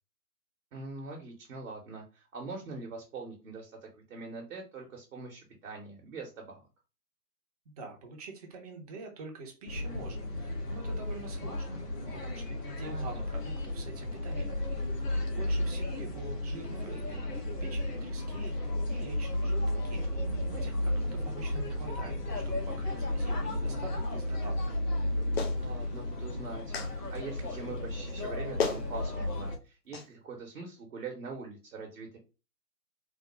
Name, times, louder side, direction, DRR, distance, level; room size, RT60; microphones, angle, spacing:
voice 1, 0.7-6.6 12.8-13.2 25.0-32.2, right 3 dB, 60° right, 0 dB, 1.1 m, -43 dB
voice 2, 7.7-14.6 15.3-18.5 18.9-20.1 20.5-24.6, right 3 dB, 25° right, 2 dB, 0.7 m, -46 dB
sound 1, 9.7-29.6, left 1 dB, 80° left, 1.3 m, -33 dB
Clapping, 25.4-25.6 26.7-26.9 28.2-28.3 28.6-28.8 29.9-30.1, left 5 dB, 40° left, 0.6 m, -31 dB
3.5 x 2.1 x 3.2 m, 0.31 s
figure-of-eight pair, 125°, 47 cm